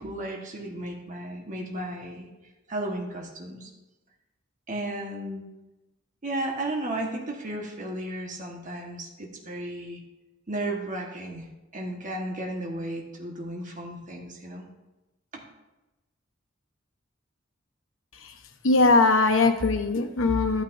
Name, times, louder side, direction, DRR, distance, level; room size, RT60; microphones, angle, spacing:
voice 1, 0.0-2.3 2.7-3.7 4.7-5.4 6.2-10.0 10.5-11.5 11.7-14.6 15.3-15.4, right 1 dB, 40° right, 0 dB, 1.4 m, -34 dB
voice 2, 18.6-20.6, left 3 dB, 85° left, 5 dB, 1.0 m, -21 dB
14.0 x 8.9 x 2.7 m, 1.0 s
head